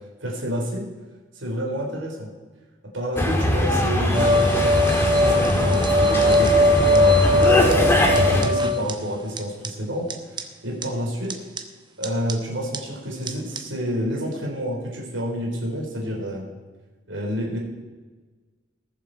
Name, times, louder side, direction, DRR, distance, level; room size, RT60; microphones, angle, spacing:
voice 1, 0.2-0.9 1.4-2.3 2.9-10.0 10.6-11.3 12.0-16.5 17.1-17.6, equal, 70° right, -1 dB, 3.6 m, -29 dB
sound 1, 3.2-8.5, left 1 dB, 15° left, 1.6 m, -21 dB
sound 2, 4.1-8.9 9.4-9.5 9.6-9.7 10.1-10.2 10.4-10.5 10.8-10.9 11.3-11.6 12.0-12.3 12.7-12.8 13.3-13.4 13.6-13.7, left 1 dB, 25° right, 0.9 m, -20 dB
19.5 x 7.4 x 4.5 m, 1.3 s
head